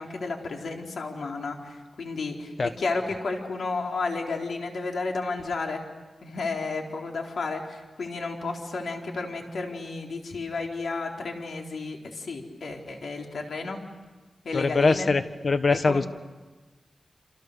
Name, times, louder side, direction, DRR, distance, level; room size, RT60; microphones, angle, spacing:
voice 1, 0.0-2.5 2.8-5.8 6.2-13.8 14.4-15.1 15.7-16.0, left 3 dB, 80° left, 1 dB, 3.9 m, -32 dB
voice 2, 14.5-16.1, left 3 dB, 55° left, 11 dB, 1.3 m, -23 dB
28.5 x 27.5 x 6.8 m, 1.3 s
wide cardioid pair, 75°, 0 cm